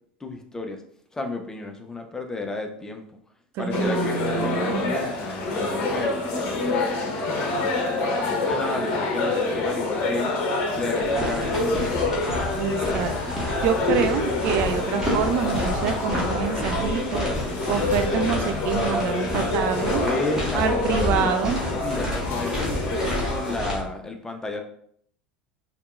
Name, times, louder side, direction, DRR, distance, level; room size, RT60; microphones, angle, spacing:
voice 1, 0.2-0.8 1.1-3.0 3.6-7.0 7.5-10.4 10.8-12.0 20.0-21.4 21.8-24.6, left 2 dB, 10° left, 4 dB, 0.5 m, -33 dB
voice 2, 3.5-4.9 12.6-17.3 17.7-20.0 20.5-21.6, right 8 dB, 45° right, 8 dB, 0.3 m, -26 dB
sound 1, 3.7-23.6, left 2 dB, 45° left, 0.8 m, -27 dB
sound 2, 11.0-23.8, left 1 dB, 10° right, 1.5 m, -30 dB
4.3 x 3.0 x 2.5 m, 0.65 s
figure-of-eight pair, 75°, 5 cm